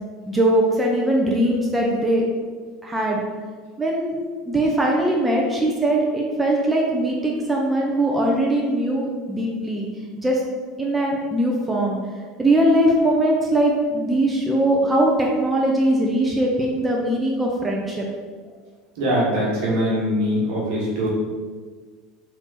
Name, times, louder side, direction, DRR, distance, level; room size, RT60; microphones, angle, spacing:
voice 1, 0.3-2.2 2.8-3.2 3.8-4.1 4.5-9.9 10.2-10.4 10.8-12.0 12.4-18.1, right 1 dB, 15° right, -2 dB, 0.6 m, -21 dB
voice 2, 19.0-21.1, equal, 65° right, -5 dB, 1.4 m, -22 dB
3.5 x 2.8 x 4.1 m, 1.5 s
hypercardioid pair, 80°, 0 cm